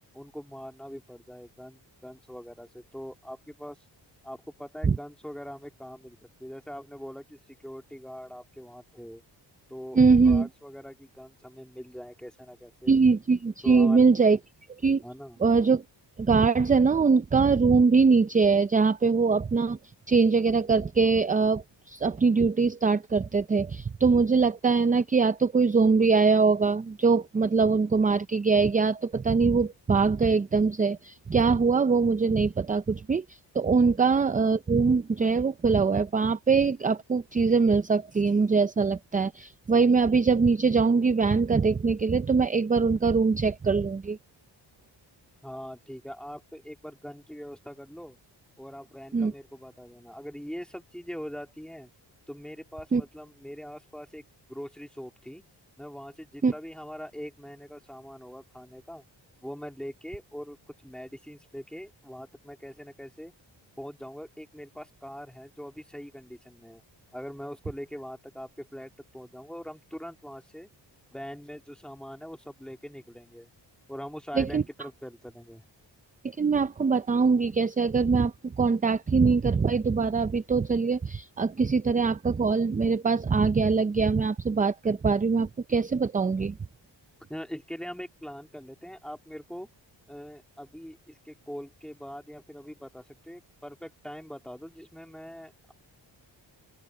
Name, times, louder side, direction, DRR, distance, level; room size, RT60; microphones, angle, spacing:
voice 1, 0.1-3.8 4.2-9.2 9.7-10.0 10.2-12.9 13.6-14.0 15.0-15.4 45.4-48.2 48.6-51.9 52.3-54.2 54.5-55.4 55.8-59.0 59.4-60.6 60.8-63.3 63.8-66.8 67.1-70.7 71.1-73.5 73.9-75.6 87.3-89.7 90.1-95.7, equal, ahead, 2.8 m, -42 dB
voice 2, 9.9-10.5 12.9-14.4 14.8-15.0 15.4-15.8 16.2-19.8 20.1-44.2 49.1-49.3 52.9-53.0 56.4-56.5 74.4-74.6 76.2-86.6, right 4 dB, 20° right, 0.4 m, -23 dB
open air
wide cardioid pair, 120°, 45 cm